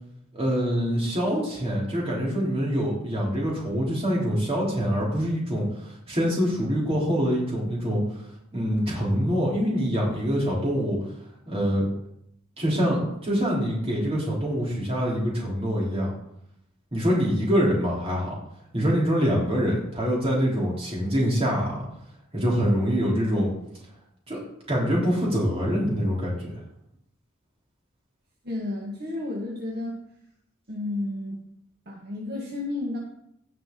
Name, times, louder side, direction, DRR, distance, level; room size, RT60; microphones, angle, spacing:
voice 1, 0.3-8.0 8.5-11.0 11.5-11.9 12.6-16.1 16.9-18.3 18.7-21.8 22.3-23.5 24.3-24.4 24.7-26.5, equal, 30° right, -4 dB, 3.5 m, -25 dB
voice 2, 28.4-30.0 30.7-31.4 31.9-33.0, left 2 dB, 50° right, -3 dB, 1.9 m, -31 dB
17.0 x 5.7 x 3.9 m, 0.76 s
head